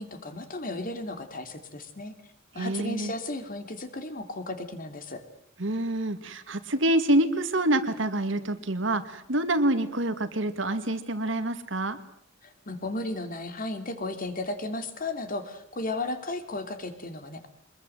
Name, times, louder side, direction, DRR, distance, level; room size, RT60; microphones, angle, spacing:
voice 1, 0.0-2.1 2.5-5.2 12.4-17.5, left 2 dB, 45° left, 8 dB, 2.7 m, -34 dB
voice 2, 2.6-3.1 5.6-12.0, right 1 dB, 70° right, 9 dB, 2.1 m, -26 dB
24.0 x 21.0 x 7.9 m, 0.72 s
head